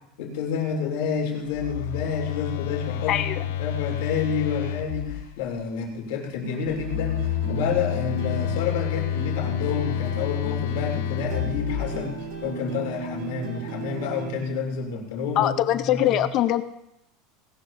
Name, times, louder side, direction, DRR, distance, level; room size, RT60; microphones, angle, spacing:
voice 1, 0.2-7.2 7.5-15.5 15.9-16.2, left 6 dB, 65° left, 0 dB, 2.9 m, -29 dB
Telephone, 1.5-5.5 6.7-12.4, left 11 dB, 85° left, 0.6 m, -29 dB
voice 2, 3.1-3.4 15.4-16.6, left 12 dB, 35° left, 11 dB, 0.6 m, -22 dB
sound 1, 6.4-14.4, right 3 dB, 50° right, 3.0 m, -36 dB
18.5 x 13.0 x 2.6 m, 0.82 s
supercardioid pair, 180°, 0 cm